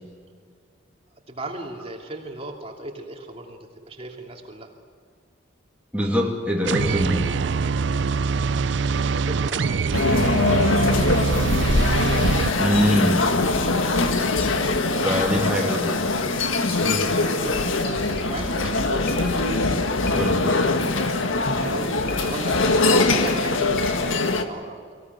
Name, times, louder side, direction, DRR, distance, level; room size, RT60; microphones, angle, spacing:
voice 1, 1.3-4.7 9.0-11.6 15.6-16.0 17.1-19.8 21.5-24.0 24.4-24.8, right 2 dB, 30° right, 1 dB, 2.8 m, -37 dB
voice 2, 5.9-7.3 12.6-13.3 15.0-15.9 16.8-17.1 20.2-20.5, equal, 5° right, -3 dB, 2.6 m, -23 dB
sound 1, 6.6-12.5, right 5 dB, 65° right, 0.5 m, -24 dB
sound 2, 9.9-24.4, left 2 dB, 85° left, 1.8 m, -22 dB
sound 3, 15.4-15.6 16.3-18.6 19.1-19.6 20.1-20.6 22.1-22.7 23.2-24.2, left 3 dB, 55° left, 7.4 m, -41 dB
25.0 x 17.0 x 9.6 m, 2.2 s
head